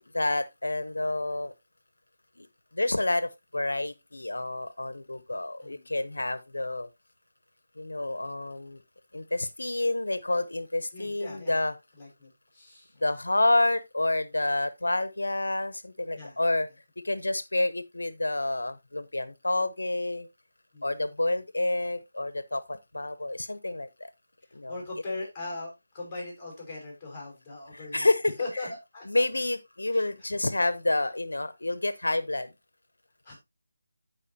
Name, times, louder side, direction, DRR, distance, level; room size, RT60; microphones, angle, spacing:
voice 1, 0.1-1.5 2.4-2.5 2.7-6.9 7.8-8.8 9.1-11.7 13.0-16.7 17.0-20.3 20.8-24.1 24.5-24.7 27.8-28.3 29.1-32.5, left 2 dB, 85° left, 0.9 m, -28 dB
voice 2, 10.9-11.6 12.0-13.0 16.1-16.4 20.7-20.9 24.7-28.1 28.4-29.2 29.9-30.1 33.2-33.3, left 2 dB, 10° left, 5.3 m, -39 dB
13.5 x 4.9 x 2.8 m
figure-of-eight pair, 165°, 0 cm